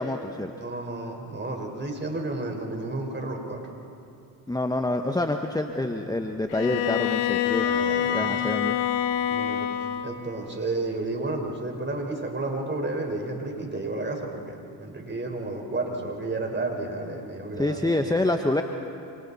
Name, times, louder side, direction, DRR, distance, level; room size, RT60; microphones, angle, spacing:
voice 1, 0.0-0.5 4.5-7.7 8.1-8.8 17.6-18.6, left 2 dB, 10° left, 5 dB, 1.1 m, -26 dB
voice 2, 0.6-3.6 7.6-8.5 9.3-9.7 10.0-18.0, right 2 dB, 25° right, 2 dB, 4.7 m, -32 dB
Bowed string instrument, 6.5-10.2, left 10 dB, 80° left, 1.2 m, -26 dB
28.5 x 27.0 x 4.2 m, 2.6 s
supercardioid pair, 60°, 44 cm